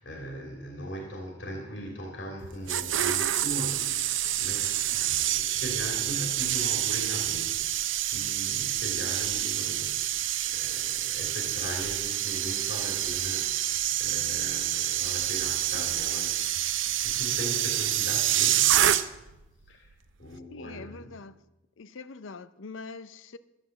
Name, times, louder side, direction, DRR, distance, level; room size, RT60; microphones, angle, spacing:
voice 1, 0.0-18.9 19.7-19.9 20.2-21.0, equal, 65° left, 3.0 m, -39 dB
sound 1, 2.4-19.4 19.6-19.9, right 12 dB, 75° right, 0.7 m, -28 dB
voice 2, 20.5-21.4 21.8-23.4, left 4 dB, 85° left, 0.6 m, -43 dB
13.0 x 9.8 x 7.3 m
head